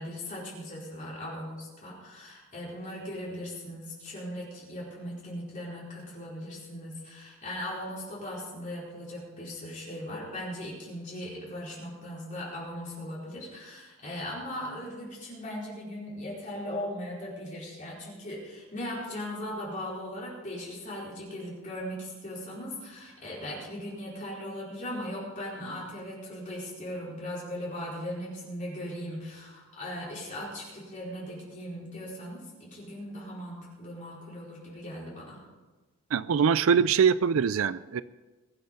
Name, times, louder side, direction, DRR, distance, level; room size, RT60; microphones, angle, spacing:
voice 1, 0.0-35.4, left 1 dB, 35° left, -6 dB, 4.7 m, -38 dB
voice 2, 36.1-38.0, right 6 dB, 65° right, 16 dB, 0.4 m, -23 dB
22.5 x 8.1 x 5.3 m, 1.3 s
head